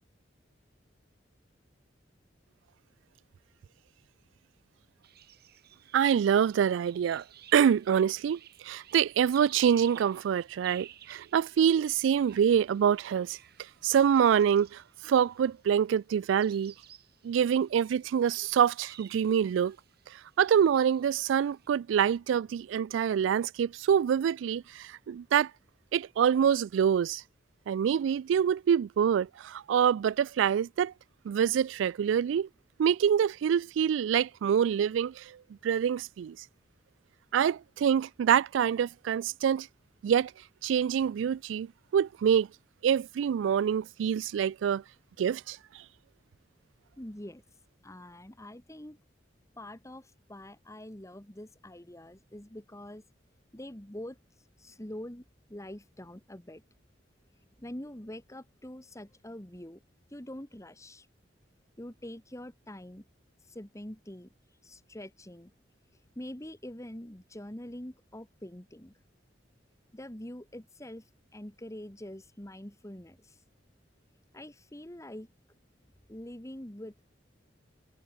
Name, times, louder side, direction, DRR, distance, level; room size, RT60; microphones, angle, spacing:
sound 1, 5.0-15.6 16.3-21.7, right 11 dB, 55° right, 6.9 m, -55 dB
voice 1, 5.9-7.2 7.5-13.4 13.8-16.7 17.2-19.8 20.4-25.5 25.9-27.2 27.7-30.9 31.3-32.5 32.8-35.4 35.6-36.4 37.3-39.7 40.0-40.3 40.6-41.7 41.9-42.5 42.8-44.8 45.2-45.6, right 8 dB, 90° right, 0.3 m, -26 dB
voice 2, 47.0-47.4 47.8-49.0 49.6-53.0 53.5-54.2 54.6-55.2 55.5-56.6 57.6-59.8 60.1-61.1 61.8-63.0 63.4-64.3 64.6-65.5 66.2-68.9 69.9-73.4 74.3-75.3 76.1-77.0, left 1 dB, 15° left, 2.1 m, -44 dB
head